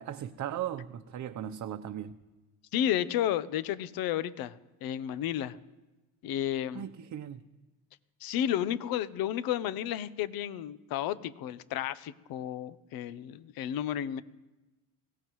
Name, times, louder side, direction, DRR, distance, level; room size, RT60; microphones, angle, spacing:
voice 1, 0.0-2.1 6.7-7.4, right 10 dB, 50° right, 8 dB, 0.9 m, -37 dB
voice 2, 2.7-4.5 4.8-5.6 6.2-6.8 8.2-14.2, left 11 dB, 65° left, 15 dB, 1.0 m, -32 dB
23.5 x 17.0 x 3.2 m, 1.1 s
supercardioid pair, 75°, 38 cm